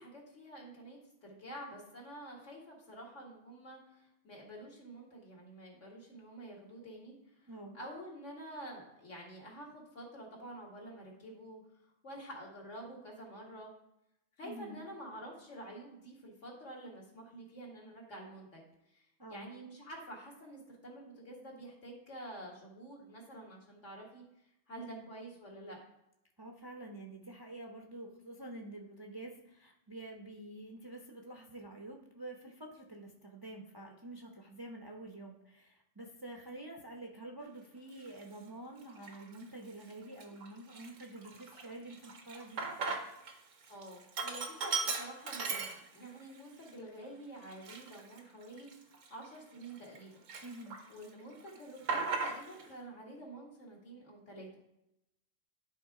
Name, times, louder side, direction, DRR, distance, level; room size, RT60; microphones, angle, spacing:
voice 1, 0.0-11.6 12.0-13.7 14.4-18.6 18.9-24.2 24.7-25.8 43.7-48.7 49.1-50.2 50.9-54.6, right 1 dB, 70° left, -3 dB, 2.4 m, -49 dB
voice 2, 7.4-7.8 14.4-14.8 19.2-19.5 24.8-25.1 26.4-42.7 50.4-50.8, right 1 dB, 25° right, 1 dB, 0.6 m, -48 dB
Sink (filling or washing), 38.1-38.2 38.9-39.4 39.8-39.9 40.2-43.3 43.6-46.2 46.6-46.7 47.4-50.0 50.3-51.1 51.3-52.7, right 4 dB, 80° right, 1.3 m, -38 dB
11.0 x 3.8 x 4.8 m, 0.83 s
omnidirectional pair, 1.3 m